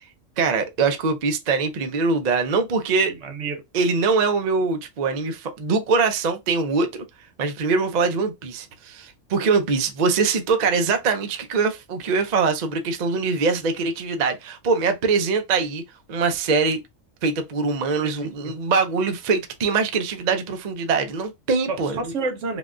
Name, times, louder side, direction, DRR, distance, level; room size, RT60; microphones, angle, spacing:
voice 1, 0.4-3.1 3.7-7.0 7.4-15.8 16.1-16.8 17.2-22.1, right 4 dB, 50° right, 0.5 m, -23 dB
voice 2, 3.1-3.6 18.0-18.5 21.7-22.6, right 4 dB, 70° right, 1.1 m, -30 dB
3.5 x 2.3 x 2.4 m
omnidirectional pair, 1.3 m